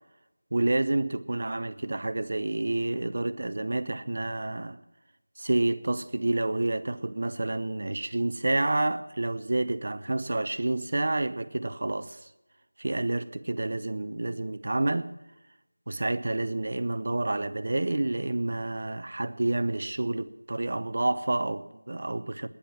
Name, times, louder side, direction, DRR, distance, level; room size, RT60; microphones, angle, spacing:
voice 1, 0.5-4.8 5.4-12.2 12.8-15.1 15.9-22.5, right 2 dB, 45° right, 0.8 m, -29 dB
19.5 x 10.0 x 6.0 m
figure-of-eight pair, 170°, 0 cm